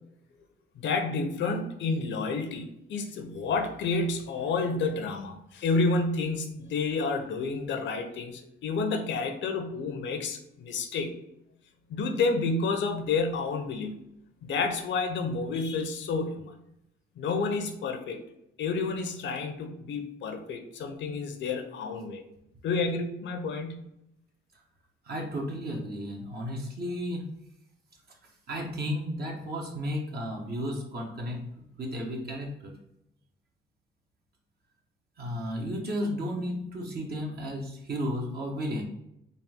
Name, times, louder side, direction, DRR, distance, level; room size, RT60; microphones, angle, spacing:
voice 1, 0.8-11.1 11.9-14.0 14.4-16.5 17.2-18.2 18.6-22.2 22.6-23.8, left 4 dB, 70° left, 6 dB, 0.7 m, -30 dB
voice 2, 25.1-27.2 28.5-31.4 31.8-32.7 35.2-38.8, equal, 55° right, 0 dB, 1.2 m, -33 dB
4.1 x 2.7 x 3.6 m, 0.81 s
cardioid pair, 90°, 20 cm